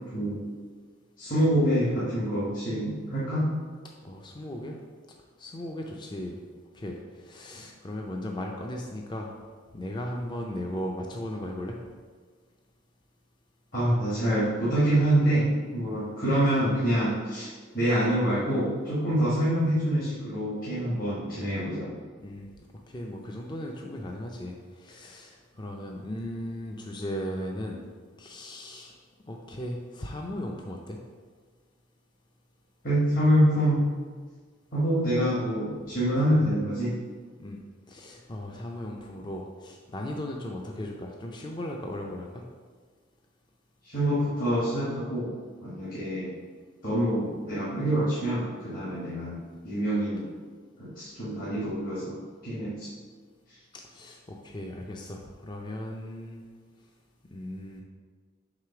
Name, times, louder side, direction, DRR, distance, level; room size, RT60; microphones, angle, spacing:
voice 1, 0.1-0.4 1.2-3.5 13.7-21.9 32.8-33.8 34.7-36.9 43.8-45.3 45.6-46.3 46.8-49.4 49.6-50.3 50.8-52.2 52.4-52.9, right 1 dB, 45° left, -9 dB, 1.4 m, -26 dB
voice 2, 4.0-4.8 5.4-6.4 6.7-9.3 9.7-11.8 22.2-22.5 22.9-27.8 28.2-28.9 29.3-31.0 37.4-37.6 37.9-42.4 53.9-56.4 57.3-57.8, left 1 dB, 20° left, 1 dB, 0.4 m, -37 dB
4.9 x 3.8 x 5.7 m, 1.5 s
head